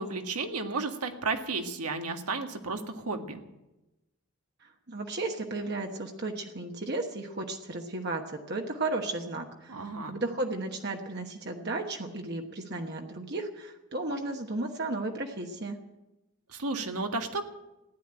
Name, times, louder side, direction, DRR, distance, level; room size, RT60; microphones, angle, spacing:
voice 1, 0.0-3.4 9.7-10.1 16.5-17.4, right 3 dB, 90° right, 5 dB, 1.7 m, -33 dB
voice 2, 4.6-15.8, right 2 dB, 45° right, 3 dB, 1.2 m, -34 dB
15.5 x 10.5 x 8.9 m, 0.98 s
head